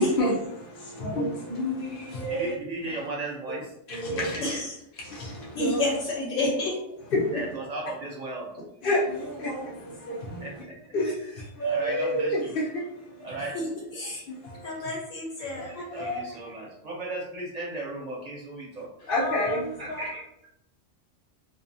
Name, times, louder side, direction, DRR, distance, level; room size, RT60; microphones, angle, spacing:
voice 1, 0.0-2.5 2.9-3.0 3.5-3.6 3.9-4.4 5.0-5.8 7.1-7.5 8.8-10.6 10.9-13.4 14.3-14.9 15.4-16.4 19.1-20.1, equal, 60° left, 0.6 m, -30 dB
voice 2, 2.3-3.7 4.1-4.6 7.3-8.5 10.4-10.7 11.6-12.6 13.2-13.6 15.4-18.9 19.8-20.5, right 2 dB, 45° right, 0.6 m, -36 dB
voice 3, 4.4-4.8 5.5-6.8 13.5-14.2 14.6-15.8, left 2 dB, 85° left, 1.1 m, -29 dB
2.5 x 2.3 x 2.6 m
omnidirectional pair, 1.3 m